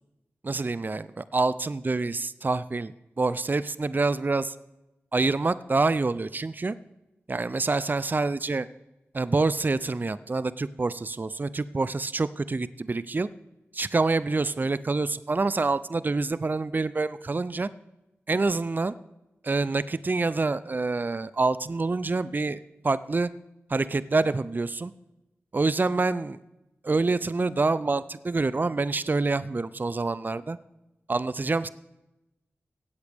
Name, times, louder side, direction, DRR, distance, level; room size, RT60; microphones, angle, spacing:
voice 1, 0.4-4.5 5.1-6.8 7.3-8.7 9.1-13.3 13.7-17.7 18.3-18.9 19.4-23.3 23.7-24.9 25.5-26.4 26.8-30.6 31.1-31.7, right 3 dB, 40° right, 16 dB, 0.5 m, -26 dB
16.5 x 8.1 x 3.5 m, 0.95 s
cardioid pair, 40°, 5 cm